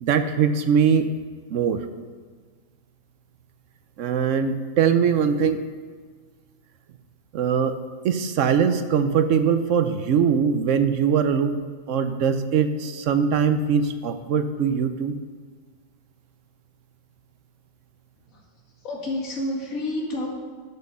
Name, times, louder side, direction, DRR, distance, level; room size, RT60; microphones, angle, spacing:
voice 1, 0.0-1.1 1.5-1.8 4.0-5.6 7.3-7.8 8.0-11.6 11.9-15.2, right 7 dB, 70° right, 10 dB, 1.0 m, -21 dB
voice 2, 18.8-20.3, left 1 dB, 85° left, -2 dB, 2.4 m, -29 dB
12.0 x 6.3 x 5.4 m, 1.5 s
omnidirectional pair, 1.4 m